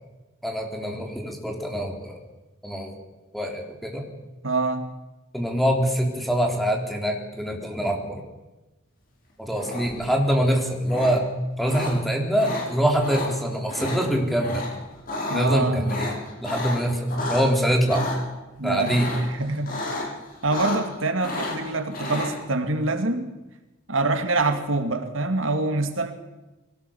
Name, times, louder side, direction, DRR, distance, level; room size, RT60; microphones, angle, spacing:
voice 1, 0.4-2.2 2.6-2.9 3.3-4.0 5.3-8.2 9.4-11.2 11.6-14.7 15.3-16.1 16.4-18.1 18.6-19.1, equal, ahead, 2 dB, 3.6 m, -24 dB
voice 2, 4.4-4.9 15.3-15.9 18.6-20.1 20.4-23.3 23.9-26.1, right 2 dB, 90° right, 7 dB, 2.4 m, -25 dB
sound 1, 9.5-10.1 10.9-11.1 11.7-11.9 12.4-12.6 13.0-13.3 13.7-14.0 14.4-14.7 15.0-15.4 15.8-17.5 17.9-18.2 18.8-19.3 19.6-20.1 20.3-21.0 21.2-22.3, left 2 dB, 45° left, 7.3 m, -31 dB
22.5 x 18.0 x 7.2 m, 1.1 s
head